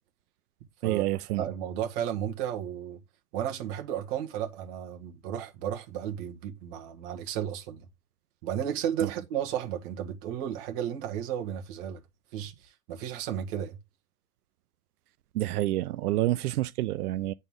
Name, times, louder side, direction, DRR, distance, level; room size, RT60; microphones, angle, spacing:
voice 1, 0.8-1.4 9.0-9.1 15.3-17.3, right 15 dB, 90° right, 0.6 m, -28 dB
voice 2, 1.4-3.0 3.3-7.8 8.4-12.0 12.3-13.8, right 10 dB, 40° right, 1.7 m, -33 dB
8.9 x 4.2 x 3.6 m
supercardioid pair, 155°, 44 cm